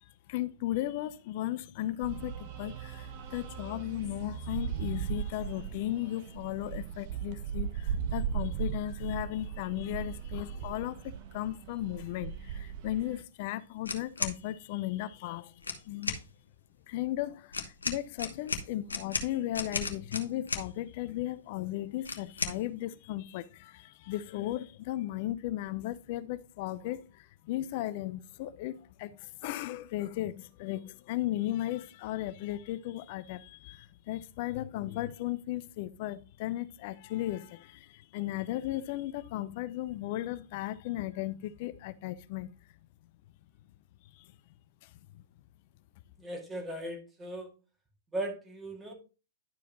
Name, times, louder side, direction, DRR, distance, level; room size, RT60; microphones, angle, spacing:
voice 1, 0.0-15.5 15.8-16.2 16.9-42.5 44.1-44.3 44.8-45.2, left 14 dB, 50° left, 0.5 m, -36 dB
sound 1, 2.0-13.2, right 8 dB, 45° right, 1.0 m, -38 dB
sound 2, 13.8-14.4 15.6-16.2 17.5-20.7 22.0-22.6, left 4 dB, 85° left, 1.1 m, -34 dB
voice 2, 46.2-47.5 48.1-48.9, right 1 dB, 15° right, 2.1 m, -37 dB
11.0 x 4.8 x 3.0 m
figure-of-eight pair, 110°, 0 cm